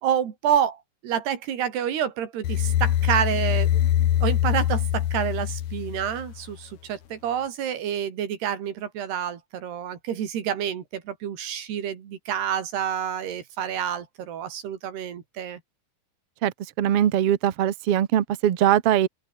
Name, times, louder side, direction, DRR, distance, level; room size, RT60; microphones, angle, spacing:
voice 1, 0.0-3.8 4.2-15.6, right 9 dB, 90° right, 4.8 m, -28 dB
sound 1, 2.4-6.5, left 12 dB, 60° left, 2.2 m, -24 dB
voice 2, 16.4-19.1, right 11 dB, 55° right, 1.7 m, -21 dB
open air
omnidirectional pair, 4.5 m